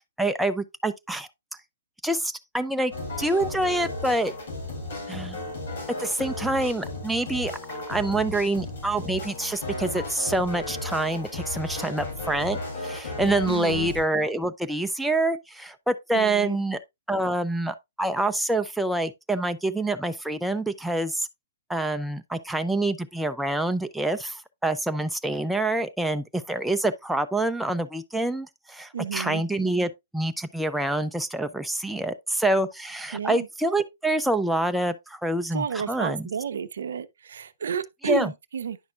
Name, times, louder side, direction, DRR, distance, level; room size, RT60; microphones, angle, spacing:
voice 1, 0.2-1.3 2.0-2.9 3.2-4.3 5.1-5.4 6.0-7.5 7.9-16.8 17.1-21.3 21.7-36.3 38.0-38.3, right 2 dB, ahead, 0.5 m, -26 dB
sound 1, 2.9-14.0, left 2 dB, 60° left, 4.9 m, -35 dB
voice 2, 13.5-13.9 16.1-16.6 28.9-29.4 33.1-33.5 35.5-38.8, right 7 dB, 70° right, 0.6 m, -31 dB
9.7 x 5.9 x 2.4 m
hypercardioid pair, 125°, 0 cm